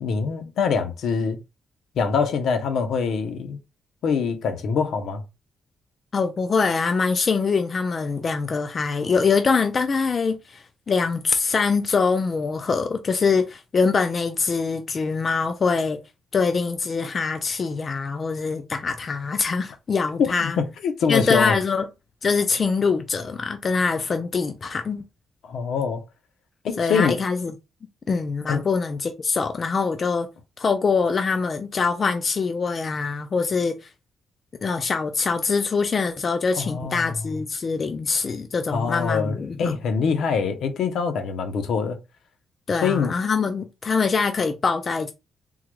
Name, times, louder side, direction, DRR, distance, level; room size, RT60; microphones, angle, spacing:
voice 1, 0.0-1.4 2.0-3.6 4.0-5.2 20.4-21.6 25.4-26.0 26.6-27.2 28.5-28.7 36.6-37.2 38.7-42.0 42.8-43.1, left 5 dB, 70° left, 0.7 m, -24 dB
voice 2, 6.1-16.0 16.3-20.6 21.1-21.9 22.2-25.0 26.8-27.5 28.1-30.3 30.6-33.9 34.6-39.7 42.7-45.1, left 5 dB, 30° left, 0.3 m, -24 dB
3.6 x 2.1 x 3.0 m
wide cardioid pair, 170°, 0 cm